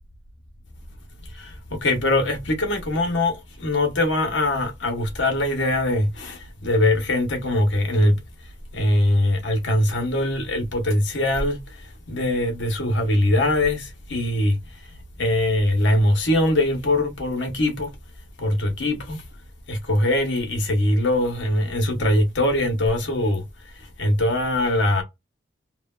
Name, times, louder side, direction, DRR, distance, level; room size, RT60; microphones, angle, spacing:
voice 1, 1.3-8.2 8.7-11.6 12.1-14.6 15.2-17.9 18.4-19.2 19.7-23.4 24.0-25.0, left 1 dB, 65° left, 0.9 m, -22 dB
3.1 x 2.1 x 2.3 m
head